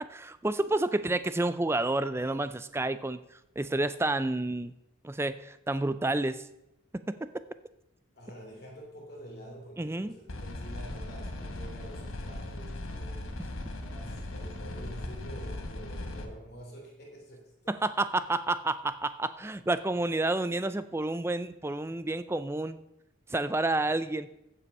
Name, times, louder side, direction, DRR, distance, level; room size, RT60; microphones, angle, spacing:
voice 1, 0.0-3.2 3.6-4.7 5.0-6.4 7.1-7.2 9.8-10.1 17.7-22.8 23.3-24.3, right 2 dB, 10° right, 13 dB, 0.4 m, -29 dB
voice 2, 8.1-13.3 13.7-18.1 23.8-23.9, equal, 45° left, -1 dB, 3.2 m, -48 dB
sound 1, 10.3-16.3, left 1 dB, 70° left, 1.3 m, -38 dB
15.0 x 5.6 x 5.4 m, 0.83 s
head